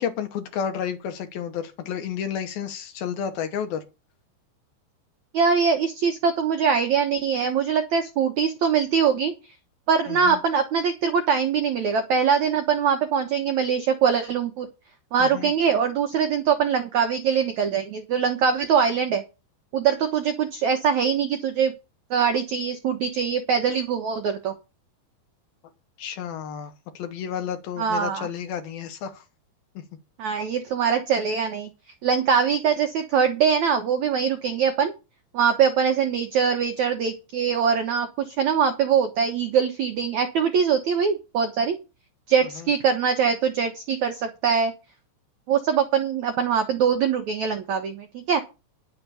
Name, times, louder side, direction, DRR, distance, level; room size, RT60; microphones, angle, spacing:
voice 1, 0.0-3.8 10.1-10.4 15.2-15.5 26.0-29.2 29.8-29.9 42.6-42.7, left 8 dB, 70° left, 2.6 m, -31 dB
voice 2, 5.3-9.3 9.9-14.7 15.1-19.2 19.7-21.7 22.1-24.5 27.8-28.3 30.2-31.7 32.0-34.9 35.3-41.8 42.3-44.7 45.5-48.4, right 6 dB, 75° right, 1.7 m, -22 dB
10.5 x 6.9 x 6.9 m
omnidirectional pair, 5.0 m